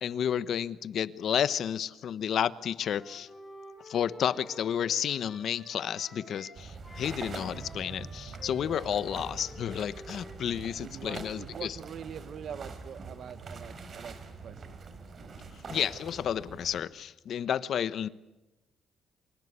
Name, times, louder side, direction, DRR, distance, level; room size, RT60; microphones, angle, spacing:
voice 1, 0.0-3.3 3.8-11.8 15.7-18.1, left 9 dB, 65° left, 1.1 m, -31 dB
Wind instrument woodwind instrument, 2.8-6.6 6.8-10.9, left 2 dB, 20° left, 7.0 m, -50 dB
sound 1, 6.5-16.8, right 4 dB, 45° right, 4.2 m, -44 dB
voice 2, 10.8-14.8, right 8 dB, 65° right, 1.5 m, -44 dB
28.0 x 25.0 x 8.3 m
cardioid pair, 90°, 0 cm